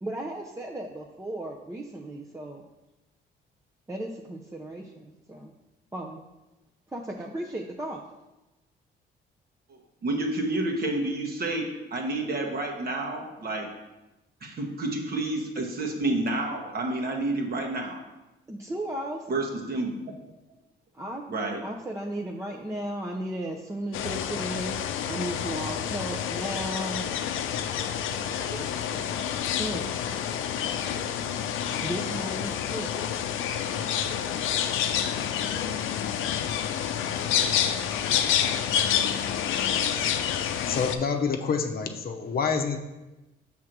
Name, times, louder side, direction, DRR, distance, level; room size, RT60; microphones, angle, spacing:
voice 1, 0.0-2.7 3.9-5.5 5.9-6.2 6.9-8.0 18.5-19.3 20.9-21.2 21.6-24.8 25.1-27.1 28.2-28.7 29.6-29.8 31.8-32.9, right 1 dB, 15° right, -1 dB, 0.6 m, -35 dB
voice 2, 9.7-11.7 11.9-13.7 14.4-18.0 19.3-19.9 21.3-21.6, right 2 dB, 50° right, 1 dB, 1.4 m, -29 dB
sound 1, 23.9-41.0, left 9 dB, 85° left, 0.5 m, -28 dB
voice 3, 40.7-42.8, left 5 dB, 50° left, 4 dB, 0.8 m, -27 dB
6.4 x 3.6 x 6.0 m, 1.0 s
cardioid pair, 90°, 20 cm